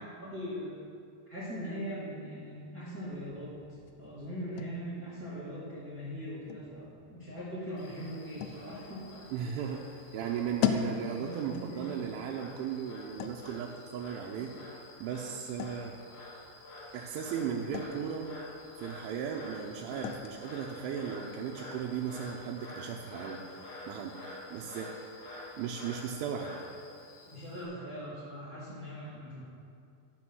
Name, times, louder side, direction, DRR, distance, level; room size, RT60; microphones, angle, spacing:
voice 1, 0.2-0.7 1.3-3.5 4.0-9.1 10.9-12.1 27.2-29.4, equal, 45° right, -10 dB, 1.1 m, -41 dB
sound 1, 3.1-22.7, left 9 dB, 90° left, 2.6 m, -42 dB
Frog, 7.8-27.6, left 2 dB, 65° left, 4.2 m, -49 dB
voice 2, 9.3-14.5 15.0-15.9 16.9-18.3 18.8-25.2 25.6-26.6, right 7 dB, 80° right, -2 dB, 3.0 m, -36 dB
12.5 x 6.4 x 6.1 m, 2.4 s
omnidirectional pair, 5.8 m